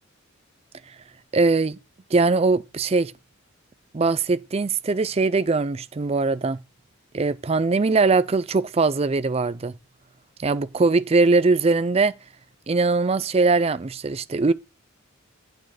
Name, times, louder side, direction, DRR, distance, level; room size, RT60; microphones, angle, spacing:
voice 1, 1.3-1.8 2.1-3.1 3.9-6.6 7.1-9.7 10.4-12.1 12.7-14.5, right 3 dB, 30° right, 0.4 m, -21 dB
8.7 x 6.3 x 4.9 m
head